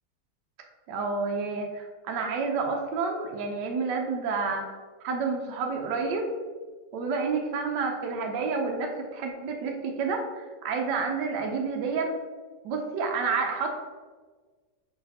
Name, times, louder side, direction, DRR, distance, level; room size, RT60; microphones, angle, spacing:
voice 1, 0.9-4.6 5.0-6.3 6.9-12.1 12.6-13.8, right 4 dB, 75° right, 2 dB, 1.2 m, -29 dB
5.9 x 3.2 x 2.7 m, 1.4 s
omnidirectional pair, 2.0 m